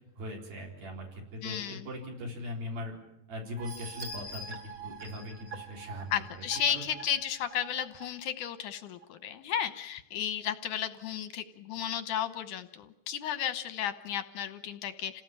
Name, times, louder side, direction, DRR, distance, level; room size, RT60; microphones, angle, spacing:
voice 1, 0.2-2.9 3.3-4.6 4.8-6.1 6.7-6.9, left 1 dB, 65° right, -1 dB, 6.1 m, -40 dB
voice 2, 1.4-1.9 6.1-15.2, left 10 dB, 70° left, 11 dB, 2.0 m, -33 dB
sound 1, 3.6-8.1 8.5-8.6 9.0-9.1, right 3 dB, 40° right, 3.2 m, -44 dB
28.5 x 18.5 x 9.1 m, 0.84 s
omnidirectional pair, 4.7 m